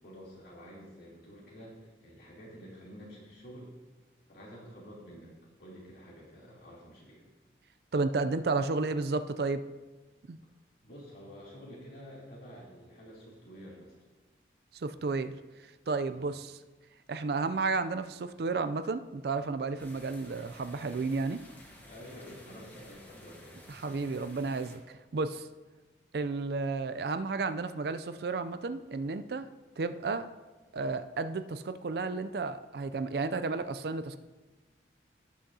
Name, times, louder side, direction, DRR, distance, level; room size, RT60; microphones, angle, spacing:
voice 1, 0.0-3.7 4.3-7.2 10.8-14.0 16.1-16.3 21.8-23.6, equal, 55° left, -6 dB, 3.1 m, -49 dB
voice 2, 7.9-9.6 10.3-10.4 14.7-15.3 15.6-16.6 17.1-21.4 23.7-25.5 26.1-29.5 29.8-30.3 30.7-34.2, right 3 dB, 60° right, 11 dB, 0.4 m, -32 dB
sound 1, 19.8-24.8, left 1 dB, 10° left, 1.1 m, -53 dB
17.5 x 6.2 x 2.8 m, 1.2 s
head